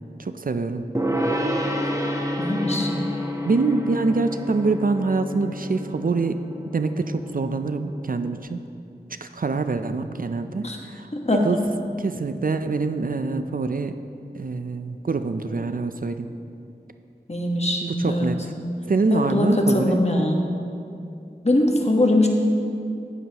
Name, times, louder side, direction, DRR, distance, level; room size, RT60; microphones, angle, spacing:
voice 1, 0.2-0.8 3.4-6.4 6.7-8.7 9.1-11.7 12.0-14.0 14.3-16.3 17.8-18.5 18.8-20.0, right 3 dB, 55° right, 9 dB, 0.4 m, -25 dB
Gong, 1.0-8.4, equal, 20° right, 1.0 m, -29 dB
voice 2, 2.4-2.9 10.6-10.8 11.1-11.4 17.3-18.3 19.1-20.4 21.4-22.3, left 1 dB, 40° left, 1 dB, 1.2 m, -21 dB
12.0 x 9.2 x 2.9 m, 2.6 s
wide cardioid pair, 40°, 17 cm